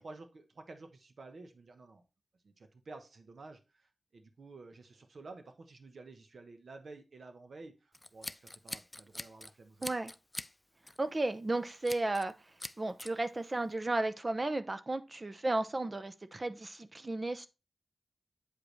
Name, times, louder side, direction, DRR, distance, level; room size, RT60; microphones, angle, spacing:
voice 1, 0.0-2.0 2.4-9.9, right 3 dB, 70° right, 1.0 m, -52 dB
Scissors, 7.9-9.5 9.8-10.5 10.9-11.1 11.8-12.3 12.6-13.1, left 1 dB, 15° left, 0.3 m, -43 dB
voice 2, 9.8-10.1 11.0-12.3 12.8-17.5, right 2 dB, 30° right, 0.6 m, -34 dB
8.3 x 5.1 x 3.2 m
wide cardioid pair, 90°, 0 cm